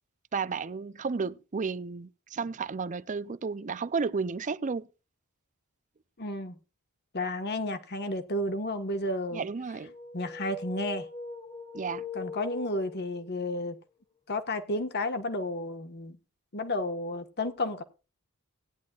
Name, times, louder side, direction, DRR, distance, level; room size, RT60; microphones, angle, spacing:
voice 1, 0.3-4.9 9.3-9.9 11.7-12.0, right 5 dB, 35° right, 0.5 m, -32 dB
voice 2, 6.2-6.6 7.1-9.4 10.1-11.1 12.1-13.8 14.3-16.2 16.5-17.8, left 1 dB, 50° left, 1.5 m, -32 dB
sound 1, 9.8-13.4, left 4 dB, 25° left, 0.9 m, -42 dB
18.0 x 10.5 x 2.4 m
head